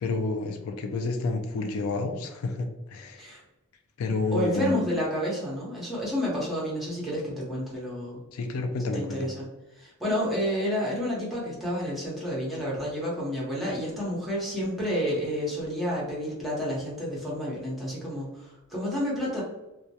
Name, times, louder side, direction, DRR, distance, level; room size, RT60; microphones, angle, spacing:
voice 1, 0.0-3.2 4.0-4.8 8.3-9.3, left 3 dB, 70° left, 5 dB, 0.3 m, -29 dB
voice 2, 4.3-8.2 8.9-9.5 9.7-19.4, equal, ahead, -7 dB, 0.7 m, -30 dB
2.2 x 2.1 x 2.7 m, 0.99 s
head